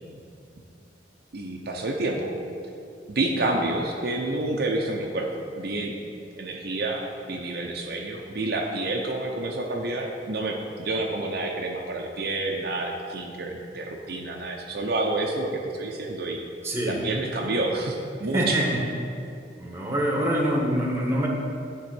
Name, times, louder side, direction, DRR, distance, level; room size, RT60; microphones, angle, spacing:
voice 1, 1.3-2.3 3.1-5.3 5.6-5.9 6.4-16.4 16.8-18.6, right 2 dB, 55° right, 0 dB, 0.7 m, -29 dB
voice 2, 16.6-17.0 18.3-18.8 19.6-21.3, right 1 dB, 15° right, -2 dB, 1.2 m, -25 dB
10.0 x 3.7 x 6.1 m, 2.5 s
head